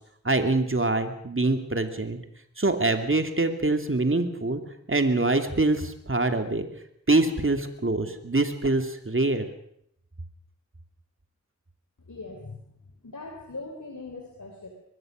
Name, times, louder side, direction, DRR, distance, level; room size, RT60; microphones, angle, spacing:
voice 1, 0.2-2.2 2.6-4.6 4.9-6.7 7.1-9.5, right 2 dB, 45° right, 7 dB, 2.7 m, -24 dB
voice 2, 12.1-14.7, left 3 dB, 80° left, 2 dB, 3.5 m, -41 dB
24.0 x 20.0 x 6.4 m, 0.70 s
wide cardioid pair, 55°, 30 cm